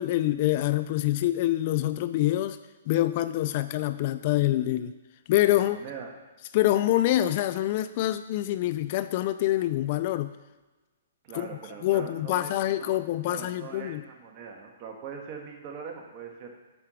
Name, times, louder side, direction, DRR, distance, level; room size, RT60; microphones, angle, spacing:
voice 1, 0.0-2.6 2.9-4.9 5.3-5.8 6.5-10.3 11.3-11.5 11.8-14.0, left 14 dB, 45° left, 13 dB, 0.3 m, -25 dB
voice 2, 5.6-6.1 11.2-16.5, right 6 dB, 35° right, 1 dB, 1.5 m, -42 dB
8.5 x 4.5 x 5.0 m, 1.2 s
hypercardioid pair, 140°, 0 cm